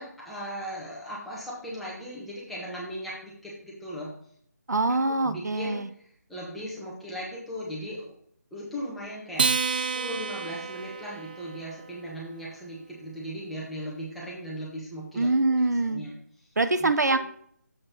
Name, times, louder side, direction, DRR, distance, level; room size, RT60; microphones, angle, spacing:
voice 1, 0.0-4.1 5.1-8.1 8.5-15.3 15.8-16.1 16.8-17.2, equal, ahead, -7 dB, 1.4 m, -38 dB
voice 2, 4.7-5.9 15.1-16.0 16.6-17.2, right 2 dB, 75° right, 10 dB, 0.7 m, -24 dB
Acoustic guitar, 9.3-12.0, right 5 dB, 30° right, 0.5 m, -29 dB
7.6 x 6.2 x 4.4 m, 0.63 s
figure-of-eight pair, 160°, 9 cm